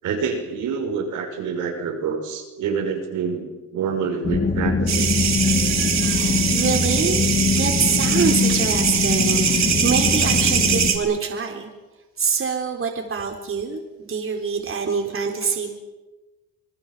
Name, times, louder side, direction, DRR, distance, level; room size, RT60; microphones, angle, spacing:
voice 1, 0.0-3.4 3.7-5.1, right 5 dB, 85° right, 2 dB, 5.8 m, -27 dB
sound 1, 4.2-10.9, left 4 dB, 30° left, 2.5 m, -22 dB
sound 2, 4.9-11.0, right 7 dB, 65° right, 3.9 m, -22 dB
voice 2, 5.4-7.2 7.5-11.7 12.2-15.8, right 6 dB, 45° right, 2 dB, 3.9 m, -26 dB
27.5 x 19.0 x 7.4 m, 1.1 s
cardioid pair, 90°, 30 cm